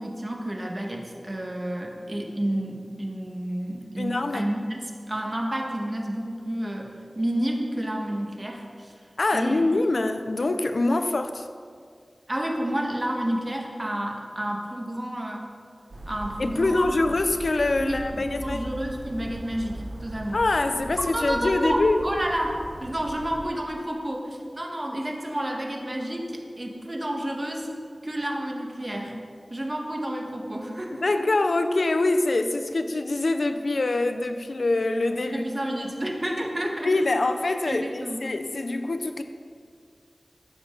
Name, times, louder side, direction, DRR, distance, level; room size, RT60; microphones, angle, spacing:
voice 1, 0.0-9.7 12.3-15.5 16.1-17.2 17.8-20.4 21.1-27.7 28.0-29.1 29.5-31.3 35.3-36.9 37.7-38.2, right 1 dB, 30° right, 0 dB, 1.7 m, -30 dB
voice 2, 4.0-4.5 9.2-11.5 16.4-18.7 20.3-22.0 31.0-35.4 36.8-39.2, left 2 dB, 80° left, 8 dB, 0.7 m, -24 dB
sound 1, 15.9-23.5, right 1 dB, 75° right, 1.3 m, -39 dB
13.5 x 9.8 x 4.0 m, 2.2 s
wide cardioid pair, 65°, 0 cm